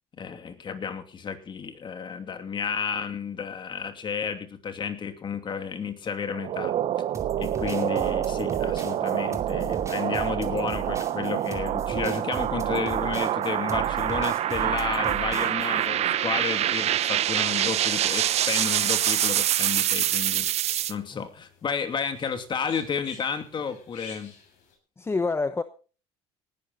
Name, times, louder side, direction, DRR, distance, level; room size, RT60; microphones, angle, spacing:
voice 1, 0.1-6.7 7.4-20.5 20.9-24.3, left 6 dB, 40° left, 2.8 m, -32 dB
sound 1, 6.3-20.9, right 11 dB, 55° right, 0.9 m, -26 dB
sound 2, 7.1-15.9, right 5 dB, 25° right, 2.6 m, -38 dB
sound 3, 17.9-24.7, left 5 dB, 75° left, 7.7 m, -51 dB
voice 2, 25.0-25.6, left 3 dB, 20° left, 0.9 m, -27 dB
19.0 x 12.0 x 4.1 m
cardioid pair, 100°, 13 cm